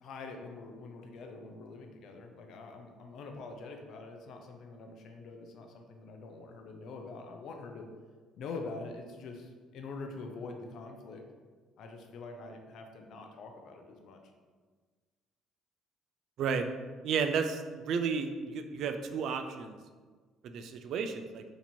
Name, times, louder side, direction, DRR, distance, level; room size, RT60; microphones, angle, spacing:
voice 1, 0.0-7.9 8.4-11.2 11.8-14.2, left 3 dB, 65° left, 3 dB, 0.5 m, -45 dB
voice 2, 17.0-19.8 20.4-21.4, right 6 dB, 70° right, 7 dB, 0.3 m, -32 dB
2.9 x 2.6 x 4.3 m, 1.5 s
supercardioid pair, 75°, 0 cm